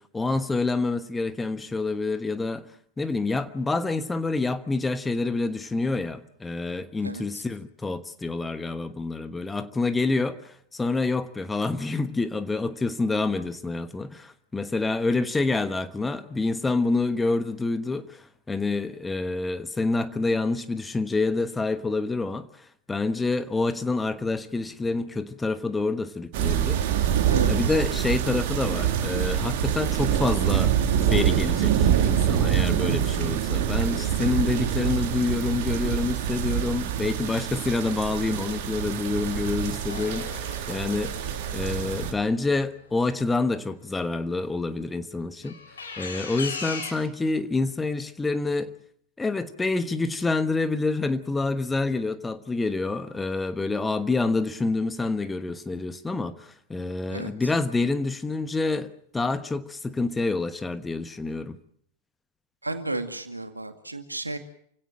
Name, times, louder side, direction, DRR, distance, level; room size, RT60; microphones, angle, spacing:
voice 1, 0.0-2.6 3.0-26.8 27.4-41.2 41.5-45.6 46.0-48.7 49.2-61.6, left 3 dB, 10° left, 1.2 m, -27 dB
sound 1, 26.3-42.1, right 9 dB, 50° right, 2.7 m, -25 dB
sound 2, 39.9-43.6 45.4-46.9, left 4 dB, 70° left, 4.6 m, -39 dB
voice 2, 62.6-64.4, right 2 dB, 80° right, 2.1 m, -33 dB
27.5 x 17.0 x 7.6 m
figure-of-eight pair, 90°, 0 cm